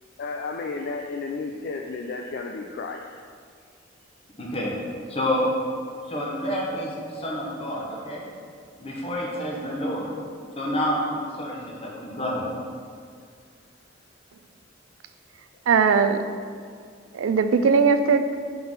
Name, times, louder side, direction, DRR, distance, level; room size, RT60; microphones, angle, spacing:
voice 1, 0.2-3.0, left 4 dB, 55° left, 2 dB, 0.3 m, -32 dB
voice 2, 4.4-4.7 5.1-5.5 6.1-8.3 8.8-10.1 10.6-12.5, equal, 30° left, -3 dB, 1.0 m, -28 dB
voice 3, 15.7-16.2 17.1-18.4, right 5 dB, 90° right, 9 dB, 0.4 m, -19 dB
5.6 x 3.8 x 5.5 m, 2.1 s
head